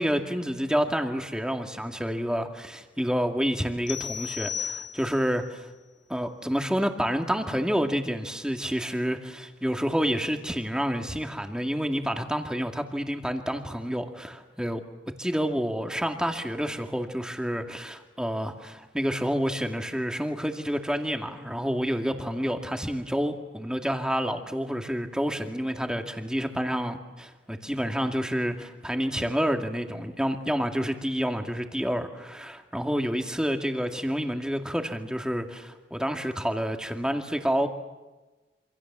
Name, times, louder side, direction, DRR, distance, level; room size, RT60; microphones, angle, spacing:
voice 1, 0.0-5.7 6.1-14.8 15.2-37.7, equal, 5° right, 4 dB, 2.2 m, -29 dB
sound 1, 3.9-5.4, left 8 dB, 70° left, 2.3 m, -34 dB
27.5 x 27.0 x 7.5 m, 1.2 s
head